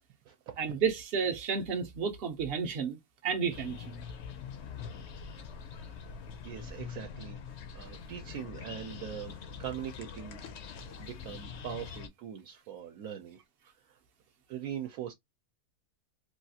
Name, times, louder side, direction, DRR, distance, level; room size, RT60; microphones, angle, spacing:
voice 1, 0.6-4.0, right 6 dB, 55° right, 0.7 m, -32 dB
sound 1, 3.5-12.1, left 6 dB, 60° left, 0.7 m, -44 dB
voice 2, 6.4-7.4 7.7-10.4 10.8-13.4 13.9-14.0 14.5-15.1, right 9 dB, 75° right, 1.0 m, -41 dB
3.2 x 2.4 x 2.7 m
omnidirectional pair, 1.6 m